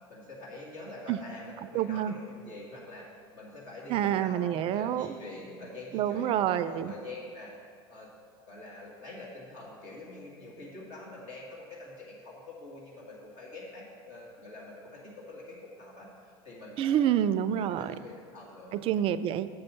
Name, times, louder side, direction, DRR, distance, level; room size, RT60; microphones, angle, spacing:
voice 1, 0.1-3.0 3.3-7.5 7.9-8.1 8.5-17.1 17.5-18.8, left 2 dB, 60° left, -4 dB, 1.9 m, -45 dB
voice 2, 1.7-2.1 3.9-5.1 5.9-6.9 16.8-17.9 18.7-19.5, right 10 dB, 45° right, 14 dB, 0.4 m, -27 dB
6.8 x 5.4 x 6.7 m, 2.3 s
hypercardioid pair, 85°, 13 cm